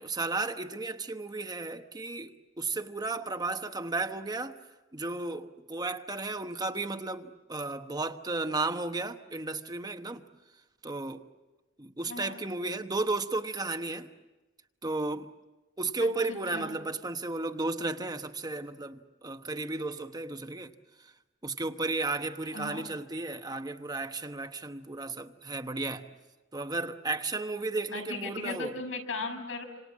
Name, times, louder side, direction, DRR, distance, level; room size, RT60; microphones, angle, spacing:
voice 1, 0.0-4.6 4.9-10.3 10.8-11.2 11.8-14.1 14.8-15.3 15.8-21.1 21.4-26.1 26.5-28.7, right 3 dB, 20° right, 1.0 m, -34 dB
voice 2, 16.0-16.8 22.5-22.8 27.9-29.6, left 3 dB, 75° left, 6.1 m, -37 dB
27.5 x 27.0 x 7.4 m
head